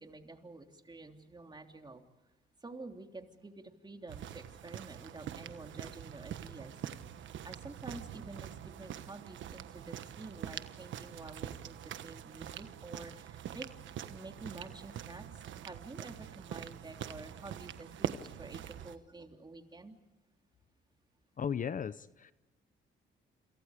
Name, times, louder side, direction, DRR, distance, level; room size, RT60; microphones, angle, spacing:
voice 1, 0.0-2.0 2.6-6.7 7.4-13.7 14.1-19.9, right 3 dB, 20° right, 4 dB, 3.3 m, -49 dB
sound 1, 4.1-19.0, right 10 dB, 70° right, 1.3 m, -44 dB
voice 2, 21.4-22.3, left 7 dB, 40° left, 15 dB, 0.7 m, -36 dB
28.5 x 27.5 x 5.1 m, 1.0 s
cardioid pair, 90°, 20 cm